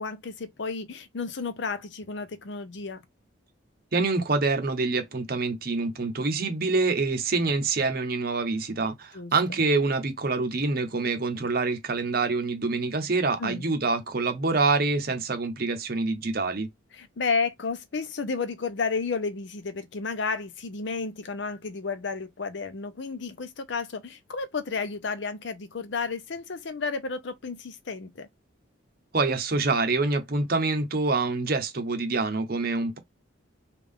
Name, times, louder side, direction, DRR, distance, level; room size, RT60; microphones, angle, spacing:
voice 1, 0.0-3.0 9.1-9.3 13.4-13.7 16.9-28.3, left 4 dB, 60° left, 0.6 m, -32 dB
voice 2, 3.9-16.7 29.1-33.0, right 3 dB, 50° right, 0.7 m, -26 dB
3.5 x 2.4 x 3.6 m
head